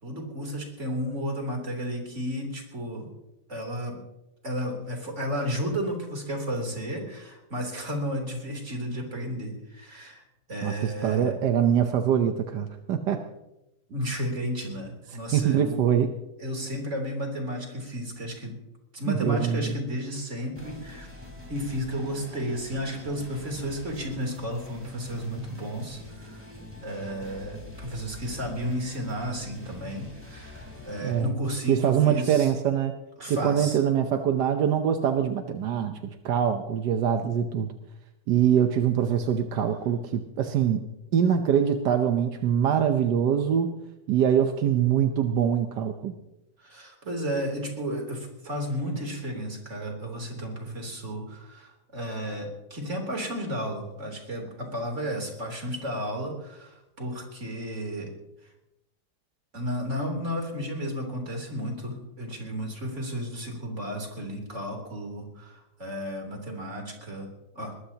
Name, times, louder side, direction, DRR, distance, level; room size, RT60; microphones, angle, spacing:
voice 1, 0.0-3.1 3.5-4.0 4.4-10.2 10.5-11.3 13.9-15.8 16.4-18.6 18.9-21.1 21.5-26.4 26.8-32.5 33.2-33.8 46.6-58.1 59.5-67.3 67.6-67.7, equal, 45° right, 1 dB, 3.8 m, -33 dB
voice 2, 10.6-13.2 15.3-16.1 19.1-19.7 31.0-31.3 31.7-32.9 33.3-36.0 36.2-37.7 38.3-40.8 41.1-43.8 44.1-46.1, right 8 dB, 85° right, 6 dB, 1.5 m, -24 dB
sound 1, 20.6-31.2, left 1 dB, 5° right, 4.1 m, -44 dB
21.0 x 21.0 x 2.9 m, 0.92 s
omnidirectional pair, 1.8 m